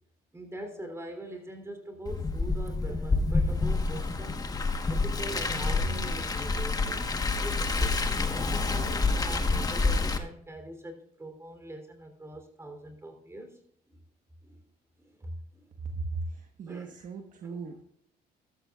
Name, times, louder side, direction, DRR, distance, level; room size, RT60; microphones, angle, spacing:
voice 1, 0.3-4.4 4.9-13.6 13.9-14.0 14.4-14.5 15.0-15.7 16.7-16.9 17.4-17.6, right 1 dB, 15° right, 5 dB, 3.5 m, -42 dB
Car, 2.1-10.2, left 3 dB, 20° left, 1.4 m, -28 dB
voice 2, 15.9-17.8, right 3 dB, 50° right, 3 dB, 1.4 m, -37 dB
14.5 x 13.0 x 2.5 m, 0.66 s
cardioid pair, 110°, 17 cm